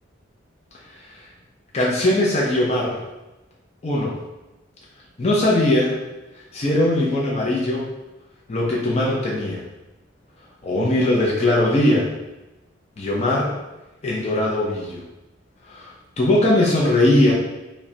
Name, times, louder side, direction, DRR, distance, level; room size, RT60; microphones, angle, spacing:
voice 1, 1.7-3.0 3.8-4.2 5.2-5.9 6.5-7.9 8.5-9.6 10.6-12.1 13.0-13.5 14.0-15.0 15.7-17.3, left 1 dB, 30° left, -4 dB, 0.5 m, -20 dB
5.0 x 2.1 x 2.7 m, 1.0 s
head